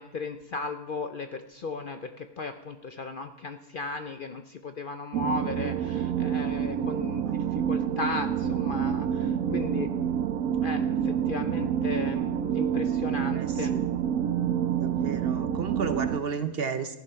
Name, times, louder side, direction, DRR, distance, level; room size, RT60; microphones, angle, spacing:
voice 1, 0.0-9.9 10.6-13.7, left 3 dB, 50° left, 7 dB, 0.6 m, -36 dB
sound 1, 5.1-16.2, right 9 dB, 85° right, 1.1 m, -28 dB
voice 2, 14.8-17.0, right 6 dB, 50° right, 9 dB, 0.8 m, -32 dB
15.0 x 10.5 x 5.6 m, 1.0 s
omnidirectional pair, 1.4 m